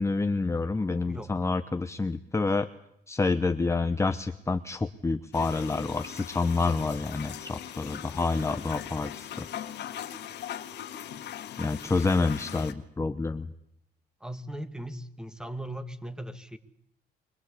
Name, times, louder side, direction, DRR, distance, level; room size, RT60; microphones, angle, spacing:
voice 1, 0.0-2.7 3.1-9.5 11.6-13.5, left 3 dB, 15° left, 10 dB, 0.9 m, -28 dB
sound 1, 5.3-12.7, left 10 dB, 70° left, 1.9 m, -40 dB
voice 2, 14.2-16.6, right 1 dB, 5° right, 11 dB, 1.9 m, -38 dB
23.5 x 20.0 x 8.4 m, 0.75 s
cardioid pair, 100°, 18 cm